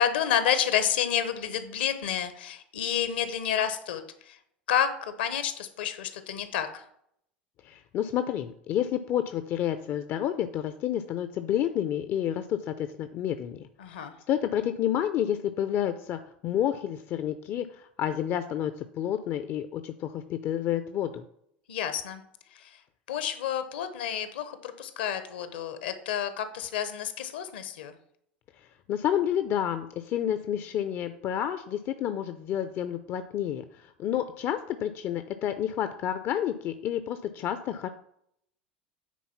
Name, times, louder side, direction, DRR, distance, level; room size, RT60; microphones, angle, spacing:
voice 1, 0.0-4.4 4.7-6.8 13.8-14.1 21.7-22.2 22.5-22.8 23.1-27.9, left 9 dB, 70° left, 10 dB, 1.1 m, -29 dB
voice 2, 7.6-13.6 14.3-21.2 28.9-37.9, left 10 dB, 45° left, 10 dB, 0.6 m, -30 dB
9.3 x 4.3 x 5.7 m, 0.71 s
figure-of-eight pair, 80°, 5 cm